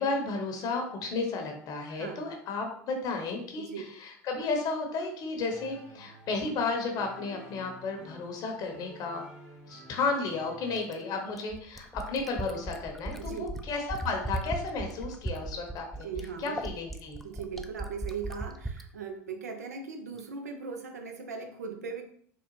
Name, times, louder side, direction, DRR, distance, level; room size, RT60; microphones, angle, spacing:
voice 1, 0.0-9.2 9.7-16.1 16.4-17.2, left 3 dB, 50° left, 3 dB, 0.7 m, -33 dB
voice 2, 1.9-2.2 3.6-3.8 13.2-13.6 16.0-16.6 17.2-22.0, right 5 dB, 85° right, 5 dB, 0.5 m, -39 dB
sound 1, 5.5-10.8, right 1 dB, 70° right, 1.2 m, -51 dB
Fill (with liquid), 10.8-18.9 20.2-20.3, right 2 dB, ahead, 0.3 m, -37 dB
3.7 x 2.1 x 3.0 m, 0.63 s
hypercardioid pair, 85°, 9 cm